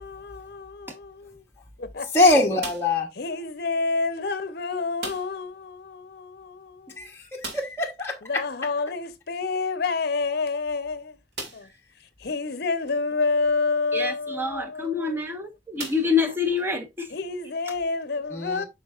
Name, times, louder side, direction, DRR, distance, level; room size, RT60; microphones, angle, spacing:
voice 1, 0.0-1.4 1.8-2.1 3.2-7.1 8.2-11.2 11.5-11.7 12.2-15.3 17.1-18.6, left 4 dB, 55° left, 0.7 m, -29 dB
voice 2, 2.1-3.1 7.0-8.4 18.4-18.6, left 2 dB, 15° left, 1.0 m, -23 dB
sound 1, 2.6-3.1 5.0-5.5 5.8-5.9 6.2-6.3 7.4-7.9 9.7-9.8 10.4-10.5 11.3-11.8 12.5-12.6 14.7-14.9 15.8-16.6, right 2 dB, 65° right, 2.2 m, -38 dB
voice 3, 13.9-17.1, left 5 dB, 10° right, 1.1 m, -26 dB
7.9 x 5.6 x 2.4 m
head